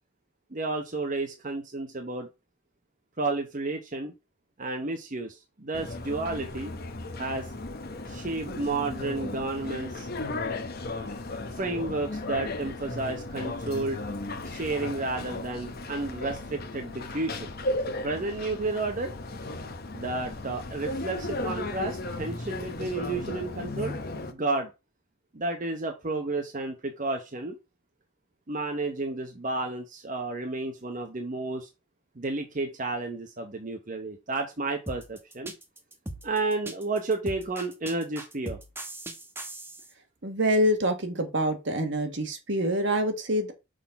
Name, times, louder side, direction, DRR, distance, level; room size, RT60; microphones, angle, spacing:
voice 1, 0.5-2.3 3.2-4.1 4.6-6.7 7.2-7.5 8.1-10.1 11.5-14.0 14.5-17.5 17.8-19.1 19.9-23.9 24.3-24.7 25.3-27.6 28.5-31.7 32.2-35.5 36.2-38.6, right 2 dB, 40° right, 0.9 m, -31 dB
sound 1, 5.7-24.3, left 2 dB, 50° left, 0.9 m, -35 dB
sound 2, 34.9-39.9, right 1 dB, 10° right, 1.0 m, -39 dB
voice 2, 40.2-43.5, equal, 60° right, 1.5 m, -26 dB
6.3 x 3.9 x 5.8 m
head